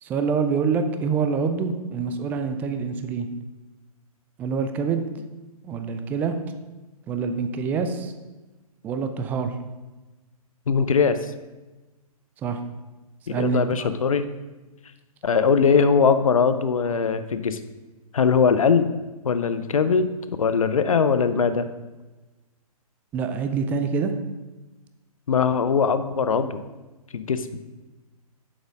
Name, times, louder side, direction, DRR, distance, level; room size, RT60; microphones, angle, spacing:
voice 1, 0.0-3.3 4.4-5.1 5.6-6.3 7.1-8.1 8.8-9.6 12.4-12.6 13.3-13.9 23.1-24.1, right 5 dB, 10° right, 7 dB, 0.4 m, -26 dB
voice 2, 10.7-11.3 13.3-14.2 15.2-17.6 18.1-18.9 19.2-20.1 20.4-21.7 25.3-26.6 27.1-27.5, left 6 dB, 65° left, 11 dB, 0.7 m, -21 dB
7.2 x 7.1 x 5.2 m, 1.1 s
figure-of-eight pair, 125°, 19 cm